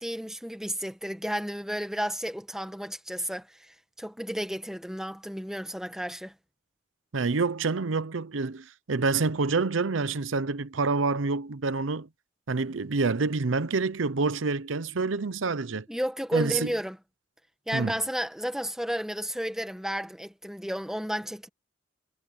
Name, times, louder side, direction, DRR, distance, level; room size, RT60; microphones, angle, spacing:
voice 1, 0.0-6.3 15.9-17.0 17.7-21.5, equal, 5° right, 1.5 m, -32 dB
voice 2, 7.1-12.1 12.5-15.9 16.3-16.7 17.7-17.9, right 4 dB, 85° right, 0.7 m, -27 dB
head